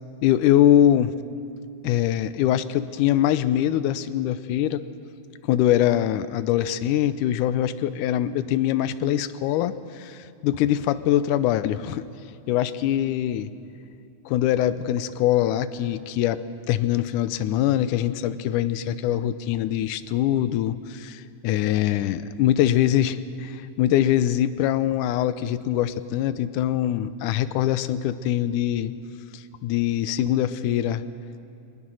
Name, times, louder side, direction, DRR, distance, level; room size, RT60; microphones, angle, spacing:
voice 1, 0.2-1.1 1.8-4.8 5.5-12.0 12.5-13.5 14.3-16.4 16.7-28.9 29.3-31.0, left 12 dB, 90° left, 14 dB, 2.2 m, -23 dB
21.0 x 20.0 x 6.3 m, 2.7 s
omnidirectional pair, 3.5 m